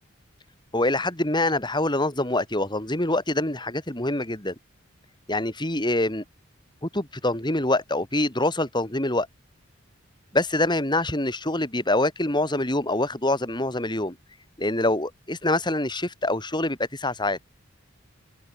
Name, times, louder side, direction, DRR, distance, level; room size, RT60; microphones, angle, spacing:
voice 1, 0.7-4.6 5.3-6.2 6.8-9.3 10.3-14.2 14.6-17.4, left 2 dB, 20° left, 5.6 m, -25 dB
open air
head